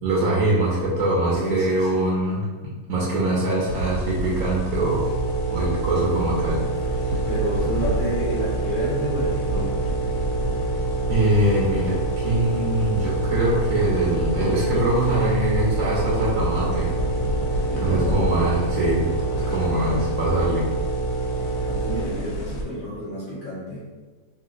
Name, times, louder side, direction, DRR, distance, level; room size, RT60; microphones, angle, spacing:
voice 1, 0.0-5.1 5.5-7.3 11.1-17.0 17.8-20.7, right 1 dB, 65° right, -5 dB, 0.9 m, -23 dB
voice 2, 1.3-2.1 7.2-9.8 17.7-18.2 21.6-23.8, right 1 dB, 45° left, -10 dB, 0.8 m, -29 dB
sound 1, 3.7-22.6, equal, 75° left, 1.0 m, -30 dB
sound 2, 4.8-22.0, right 4 dB, 85° right, 1.2 m, -27 dB
2.9 x 2.7 x 2.4 m, 1.4 s
omnidirectional pair, 1.7 m